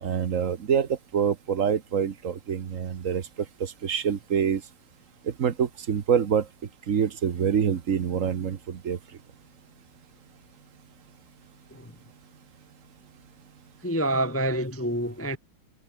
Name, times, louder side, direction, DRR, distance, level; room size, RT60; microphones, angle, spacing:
voice 1, 0.0-3.3 3.6-4.6 5.2-6.5 6.9-9.0, right 7 dB, 45° right, 1.3 m, -26 dB
voice 2, 13.8-15.4, right 1 dB, 15° left, 0.6 m, -27 dB
omnidirectional pair, 2.2 m